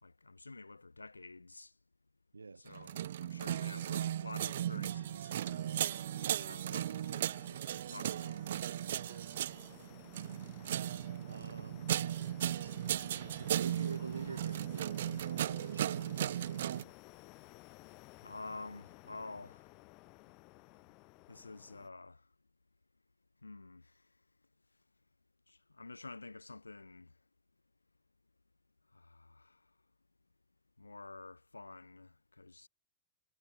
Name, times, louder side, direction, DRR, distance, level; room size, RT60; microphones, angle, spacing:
voice 1, 0.0-1.7 2.6-6.0 6.4-8.4 18.2-19.6 21.3-22.2 23.4-23.9 25.5-27.1 28.9-29.6 30.8-32.7, left 3 dB, 80° left, 2.9 m, -50 dB
voice 2, 2.3-2.8 3.5-3.8 11.3-12.0 12.6-12.7 13.3-17.0, right 4 dB, 80° right, 5.9 m, -48 dB
sound 1, 2.7-16.8, right 11 dB, 60° right, 0.9 m, -36 dB
sound 2, 5.4-21.9, left 26 dB, 40° left, 4.1 m, -57 dB
figure-of-eight pair, 90°, 0 cm